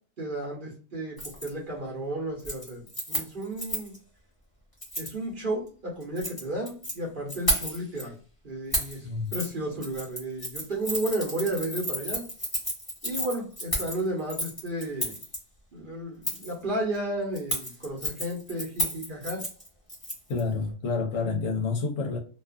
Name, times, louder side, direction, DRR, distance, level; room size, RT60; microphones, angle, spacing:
voice 1, 0.2-4.0 5.0-8.2 8.4-12.2 13.0-15.2 15.7-19.4, right 1 dB, 40° right, 0.9 m, -33 dB
Keys jangling, 1.2-1.5 1.8-2.1 2.4-4.0 4.8-5.1 6.0-6.9 7.3-8.0 8.7-9.0 9.3-9.5 9.8-15.4 16.2-16.5 17.4-20.4 20.7-20.8, equal, 15° left, 1.0 m, -32 dB
voice 2, 20.3-22.2, left 4 dB, 70° left, 1.0 m, -28 dB
2.5 x 2.3 x 2.3 m
omnidirectional pair, 1.5 m